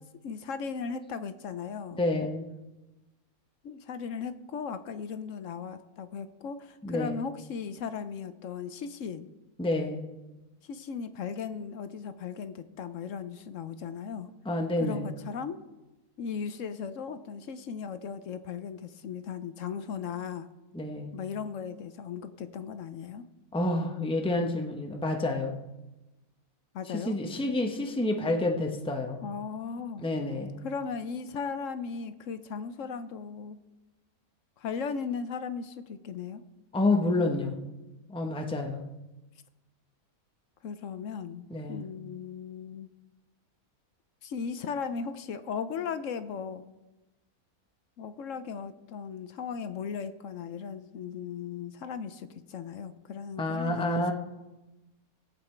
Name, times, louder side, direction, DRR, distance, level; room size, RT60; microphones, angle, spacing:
voice 1, 0.2-2.0 3.6-9.3 10.6-14.3 14.8-15.6 16.2-20.5 21.1-23.2 26.7-27.2 29.2-30.1 30.6-33.6 34.6-36.4 40.6-42.9 44.2-46.7 48.0-54.1, left 6 dB, 65° left, 11 dB, 1.0 m, -37 dB
voice 2, 1.9-2.5 6.8-7.2 9.6-10.0 14.5-15.1 20.7-21.2 23.5-25.6 26.9-29.2 30.0-30.7 36.7-37.5 38.1-38.9 41.5-41.8 53.4-54.1, left 2 dB, 5° left, 3 dB, 0.9 m, -29 dB
18.5 x 8.2 x 4.5 m, 1.1 s
omnidirectional pair, 1.6 m